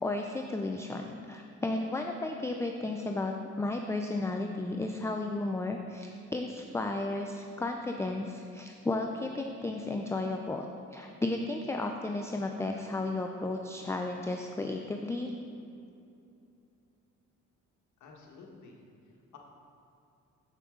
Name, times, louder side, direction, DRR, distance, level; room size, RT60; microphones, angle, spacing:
voice 1, 0.0-15.3, left 2 dB, 10° left, 3 dB, 0.4 m, -34 dB
voice 2, 18.0-18.8 19.0-19.4, left 4 dB, 75° left, -1 dB, 1.4 m, -52 dB
7.8 x 6.5 x 3.7 m, 2.7 s
cardioid pair, 90°, 30 cm